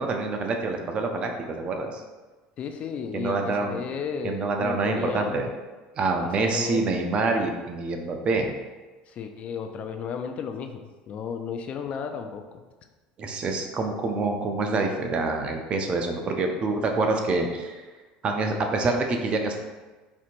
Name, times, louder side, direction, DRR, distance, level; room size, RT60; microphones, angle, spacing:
voice 1, 0.0-2.0 3.1-3.9 4.2-5.5 6.0-8.5 13.2-17.7 18.2-19.6, right 3 dB, 35° right, 3 dB, 0.5 m, -26 dB
voice 2, 2.6-5.5 6.4-7.0 9.1-12.6, left 6 dB, 40° left, 6 dB, 0.3 m, -34 dB
4.3 x 2.8 x 2.5 m, 1.3 s
supercardioid pair, 120°, 3 cm